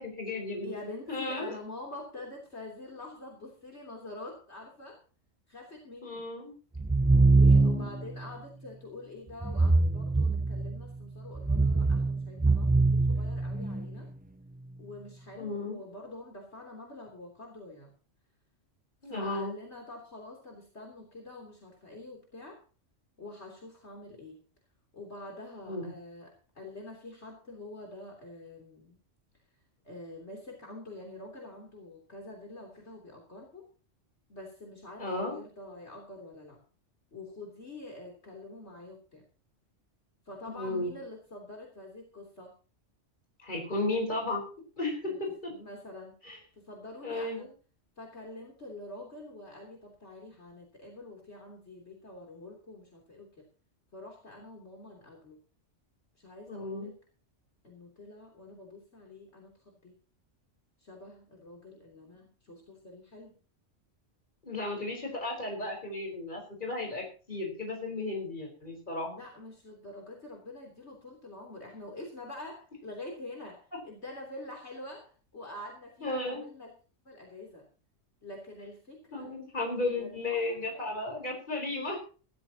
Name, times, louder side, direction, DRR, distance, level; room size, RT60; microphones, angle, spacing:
voice 1, 0.0-0.7 1.1-1.5 6.0-6.5 7.5-7.9 15.4-15.8 19.0-19.5 25.7-25.9 35.0-35.4 40.6-41.0 43.4-44.4 44.8-45.5 46.2-46.4 47.0-47.5 56.5-56.9 64.4-69.1 76.0-76.4 79.1-82.0, left 2 dB, 40° left, 1 dB, 4.8 m, -34 dB
voice 2, 0.6-5.0 5.5-6.3 7.2-14.1 14.8-17.9 19.0-22.6 23.2-24.4 24.9-29.0 29.8-33.6 34.3-36.6 37.1-39.3 40.3-42.5 45.1-45.2 45.5-46.2 46.6-47.5 48.0-53.5 53.9-55.4 56.2-56.9 57.6-59.9 60.8-63.3 69.1-76.7 77.1-77.7 78.2-79.3 80.0-80.8 81.2-81.3, left 2 dB, 60° left, 0 dB, 3.7 m, -46 dB
sound 1, 6.8-8.0 9.4-10.8 11.3-13.9, right 3 dB, 15° right, 0.3 m, -24 dB
19.5 x 14.0 x 3.0 m, 0.37 s
omnidirectional pair, 1.3 m